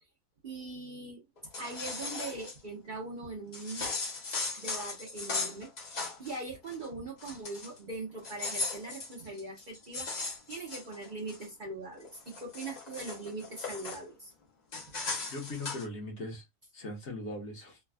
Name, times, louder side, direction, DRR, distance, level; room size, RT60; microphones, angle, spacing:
voice 1, 0.4-1.2 1.6-3.9 4.6-5.7 6.2-10.1 10.5-14.3, right 3 dB, 45° right, 0.8 m, -41 dB
sound 1, 1.4-2.6 3.5-6.4 6.7-6.9 7.2-7.8 8.2-11.5 12.0-14.0 14.7-15.9, left 3 dB, 40° left, 0.6 m, -38 dB
voice 2, 15.3-16.4 16.7-17.8, left 2 dB, 55° left, 1.2 m, -39 dB
3.3 x 2.2 x 2.2 m
omnidirectional pair, 1.4 m